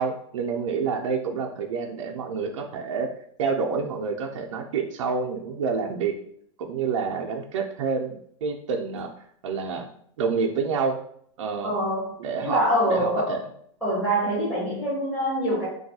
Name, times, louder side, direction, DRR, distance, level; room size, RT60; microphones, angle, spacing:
voice 1, 0.0-3.1 3.4-6.1 6.6-9.1 9.4-9.9 10.2-11.0 11.4-11.7 12.2-13.4, right 5 dB, 75° right, 2 dB, 0.5 m, -28 dB
voice 2, 11.6-13.4 13.8-15.7, equal, 5° left, -10 dB, 0.6 m, -25 dB
2.6 x 2.3 x 2.7 m, 0.66 s
supercardioid pair, 170°, 16 cm